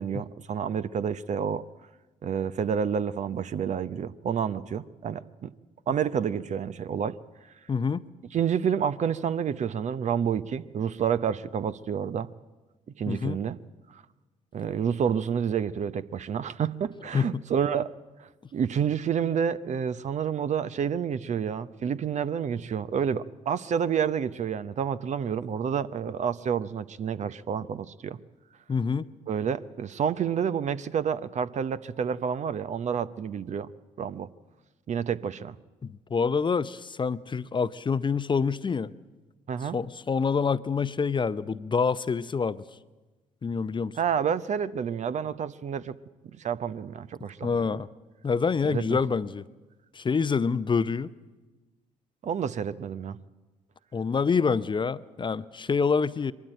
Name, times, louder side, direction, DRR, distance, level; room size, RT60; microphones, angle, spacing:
voice 1, 0.0-1.6 2.2-5.5 5.9-7.2 8.3-12.3 13.0-13.6 13.9-14.0 14.5-17.9 18.2-28.2 29.3-33.7 34.0-34.3 34.9-35.6 39.5-39.8 44.0-46.0 46.4-47.6 48.6-48.8 52.2-53.2, right 7 dB, 50° right, 14 dB, 0.8 m, -29 dB
voice 2, 7.7-8.0 13.1-13.4 17.1-17.4 28.7-29.1 35.8-38.9 39.7-42.6 43.4-44.0 47.4-47.9 48.2-49.4 49.9-51.1 53.9-56.3, left 5 dB, 30° left, 15 dB, 0.7 m, -26 dB
22.0 x 13.5 x 8.9 m, 1.2 s
hypercardioid pair, 50°, 16 cm